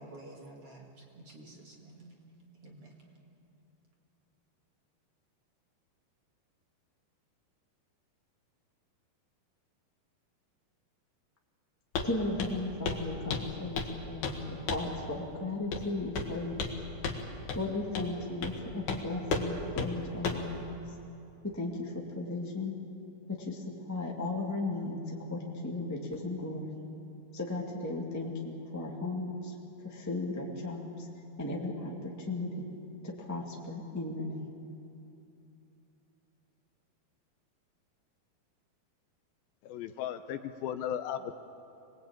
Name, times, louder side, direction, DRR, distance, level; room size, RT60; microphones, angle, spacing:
voice 1, 0.0-2.2 2.6-3.0, right 2 dB, 45° right, 0 dB, 2.4 m, -50 dB
Walk footsteps, 11.9-12.1 12.4-12.6 12.8-13.0 13.3-14.0 14.2-14.4 14.7-14.9 15.7-15.9 16.1-16.8 17.0-17.2 17.5-17.6 17.9-18.1 18.4-18.6 18.9-19.0 19.3-19.5 19.8-19.9 20.2-20.5, left 4 dB, 55° left, 2.8 m, -33 dB
voice 2, 12.0-16.7 17.5-20.7 21.4-22.7 23.3-26.8 27.3-29.5 29.8-31.1 31.4-32.7 33.0-34.5, left 2 dB, 10° left, -2 dB, 0.9 m, -36 dB
voice 3, 39.6-41.3, left 9 dB, 80° left, 9 dB, 2.3 m, -36 dB
25.5 x 20.0 x 8.9 m, 2.8 s
omnidirectional pair, 4.6 m